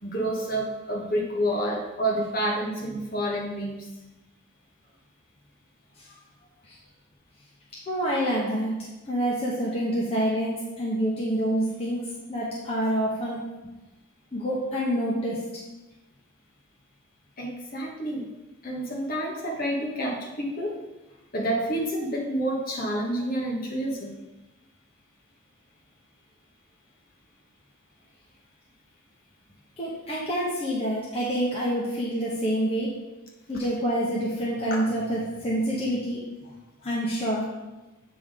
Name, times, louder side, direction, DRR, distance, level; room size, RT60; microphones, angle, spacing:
voice 1, 0.0-3.9 17.4-18.3 18.6-20.8 21.3-24.2 34.7-34.8, right 1 dB, 45° left, -1 dB, 1.4 m, -29 dB
voice 2, 7.9-8.8 9.0-13.4 14.3-15.4 29.8-32.9 33.5-36.5 36.8-37.5, equal, 25° left, -6 dB, 1.0 m, -27 dB
8.3 x 3.7 x 4.9 m, 1.1 s
head